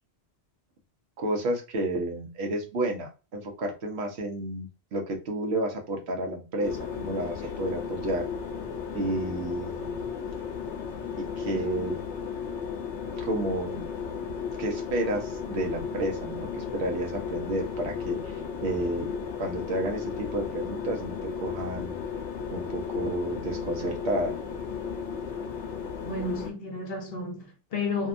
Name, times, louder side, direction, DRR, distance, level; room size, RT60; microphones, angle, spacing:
voice 1, 1.2-8.2 8.9-10.0 11.2-12.0 13.2-13.8 14.6-19.1 19.4-22.0 22.5-24.4, right 1 dB, 70° right, 1.0 m, -31 dB
sound 1, 6.6-26.5, left 6 dB, 90° left, 0.9 m, -35 dB
voice 2, 26.0-28.1, left 3 dB, 60° left, 0.9 m, -32 dB
2.7 x 2.2 x 2.4 m
omnidirectional pair, 1.1 m